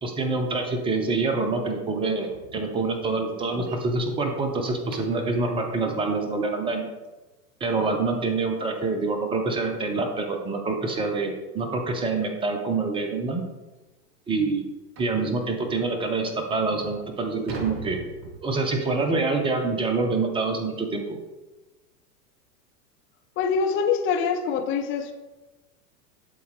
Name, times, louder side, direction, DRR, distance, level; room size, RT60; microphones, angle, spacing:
voice 1, 0.0-6.9 7.6-13.4 14.3-14.7 15.0-18.1 18.4-21.2, right 3 dB, 10° right, 4 dB, 0.5 m, -26 dB
sound 1, 2.2-5.3 8.2-8.3 8.7-8.9 9.3-9.4 9.9-10.0 11.1-11.2 11.6-11.7 12.4-12.5 12.8-12.9 13.4-13.5 15.0-15.3 16.0-16.1 16.6-18.9, right 4 dB, 35° right, 1.3 m, -42 dB
voice 2, 23.4-25.1, left 6 dB, 25° left, 4 dB, 0.8 m, -24 dB
11.0 x 4.1 x 3.2 m, 1.1 s
figure-of-eight pair, 90°, 47 cm